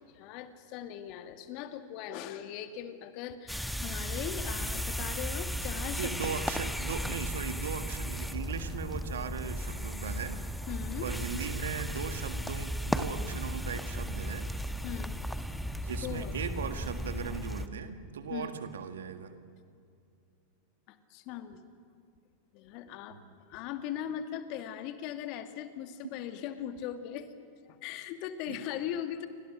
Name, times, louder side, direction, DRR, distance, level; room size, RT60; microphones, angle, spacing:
voice 1, 0.1-6.6 10.7-11.1 14.8-15.2 16.0-16.3 18.3-18.6 20.9-21.6 22.5-23.2 23.5-27.3 27.7-29.3, left 10 dB, 50° left, 9 dB, 2.0 m, -39 dB
sound 1, 3.5-17.7, equal, ahead, 1.3 m, -35 dB
voice 2, 5.9-10.6 11.0-14.5 15.6-19.3 23.1-23.3 28.5-28.6, right 6 dB, 75° right, 9 dB, 1.8 m, -38 dB
29.0 x 24.5 x 6.1 m, 2.4 s
hypercardioid pair, 95°, 0 cm